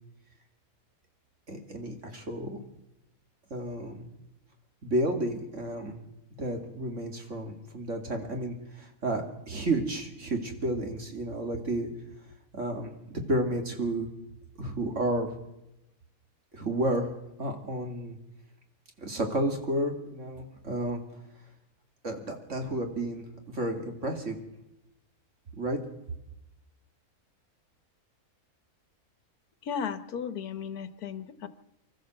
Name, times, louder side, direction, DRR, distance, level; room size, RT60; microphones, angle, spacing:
voice 1, 1.5-2.6 3.5-4.0 4.8-6.0 6.4-11.9 12.5-14.1 14.6-15.4 16.5-17.1 17.4-18.2 19.0-21.0 22.0-24.4 25.6-25.8, right 1 dB, 50° right, 3 dB, 2.9 m, -31 dB
voice 2, 29.6-31.5, left 7 dB, 80° left, 13 dB, 1.6 m, -35 dB
25.0 x 13.5 x 7.8 m, 0.91 s
omnidirectional pair, 1.6 m